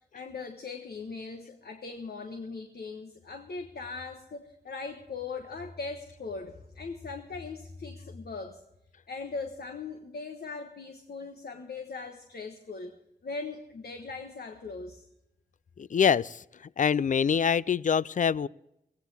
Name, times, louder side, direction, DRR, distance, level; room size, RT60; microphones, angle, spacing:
voice 1, 0.1-8.6 9.1-12.9 13.2-15.0, left 4 dB, 65° left, 5 dB, 1.2 m, -39 dB
voice 2, 15.8-16.4 16.8-18.5, left 7 dB, 45° left, 21 dB, 0.4 m, -25 dB
16.5 x 16.0 x 3.4 m, 0.85 s
cardioid pair, 65°, 18 cm